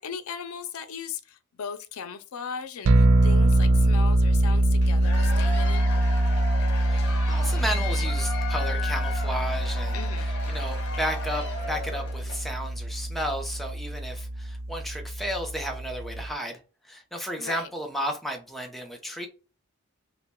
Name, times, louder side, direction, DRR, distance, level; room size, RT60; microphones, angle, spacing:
voice 1, 0.0-5.9 9.9-10.3 17.4-17.7, left 6 dB, 85° left, 0.5 m, -37 dB
sound 1, 2.8-16.3, right 1 dB, 70° right, 0.4 m, -24 dB
Cheering / Applause / Crowd, 4.8-12.5, left 3 dB, 55° left, 1.2 m, -36 dB
voice 2, 6.9-16.6 16.8-19.3, equal, ahead, 0.7 m, -33 dB
5.5 x 2.2 x 2.2 m
head